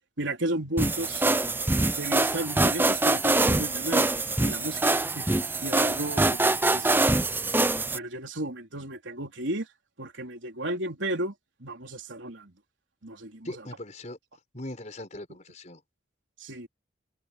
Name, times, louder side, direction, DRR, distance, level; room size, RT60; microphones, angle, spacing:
voice 1, 0.2-1.3 2.0-4.8 5.2-7.1 7.6-9.7 10.0-11.3 11.6-12.5 13.0-13.5 16.4-16.7, right 1 dB, 80° right, 3.9 m, -34 dB
sound 1, 0.8-8.0, right 2 dB, 10° right, 0.6 m, -24 dB
voice 2, 13.4-14.2 14.5-15.8, left 1 dB, 40° left, 4.9 m, -40 dB
head